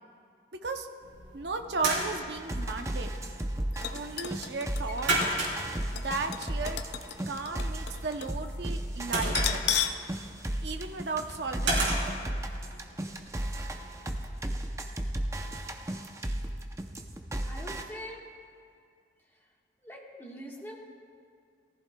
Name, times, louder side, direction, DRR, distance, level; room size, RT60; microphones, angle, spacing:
sound 1, 1.0-14.1, right 2 dB, 85° right, 3.4 m, -36 dB
voice 1, 1.3-3.2 3.9-5.1 5.9-6.8 7.3-9.6 10.6-12.3, right 4 dB, 65° right, 6 dB, 0.6 m, -35 dB
sound 2, 2.3-17.8, right 1 dB, 15° right, 0.5 m, -34 dB
sound 3, 3.7-8.4 8.7-8.8 9.3-10.1 10.4-10.5 11.3-11.5 11.8-11.9, left 9 dB, 65° left, 0.5 m, -35 dB
voice 2, 17.4-18.3 19.8-20.8, equal, 10° left, -2 dB, 1.3 m, -43 dB
18.5 x 14.5 x 2.2 m, 2.3 s
head